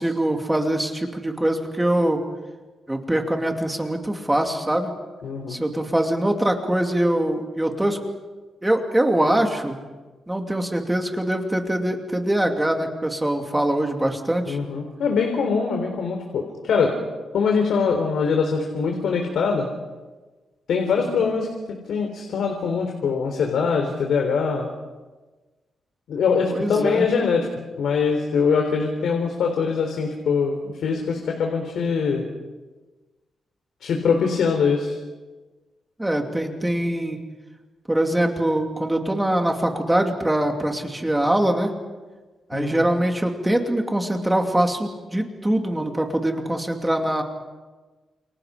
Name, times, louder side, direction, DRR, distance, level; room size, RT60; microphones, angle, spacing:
voice 1, 0.0-2.2 2.9-4.9 5.5-8.0 8.6-9.8 10.3-14.6 20.8-21.3 26.5-27.1 36.0-37.2 37.9-41.7 42.5-47.2, right 1 dB, 10° right, 3 dB, 2.5 m, -23 dB
voice 2, 5.2-5.6 14.5-16.9 17.3-19.7 20.7-21.5 21.9-24.7 26.1-27.5 27.8-32.2 33.8-35.0 42.5-42.8, left 5 dB, 80° left, 3 dB, 3.8 m, -23 dB
30.0 x 28.5 x 5.1 m, 1.3 s
wide cardioid pair, 175°, 0 cm